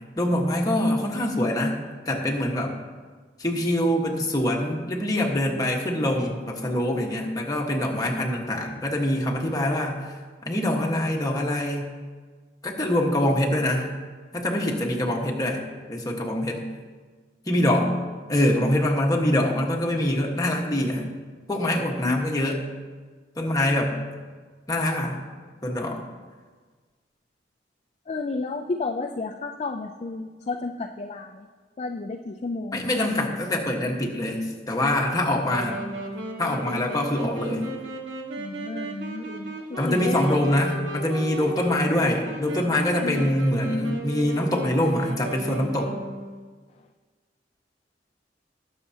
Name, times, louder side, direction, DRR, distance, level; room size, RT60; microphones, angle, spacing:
voice 1, 0.2-1.8 2.1-2.7 3.4-9.9 10.5-11.9 12.6-13.9 14.3-15.6 15.9-16.6 17.5-17.9 18.3-21.1 21.5-22.6 23.4-24.0 24.7-25.2 25.6-26.0 32.7-35.9 36.4-37.7 39.8-45.9, left 1 dB, 20° left, -1 dB, 1.4 m, -24 dB
voice 2, 28.1-31.5 31.8-33.0 38.4-40.5 43.0-43.4, left 3 dB, 35° left, 4 dB, 0.4 m, -32 dB
Wind instrument woodwind instrument, 35.4-46.4, right 2 dB, 85° right, 1.5 m, -35 dB
20.0 x 6.8 x 2.8 m, 1.4 s
head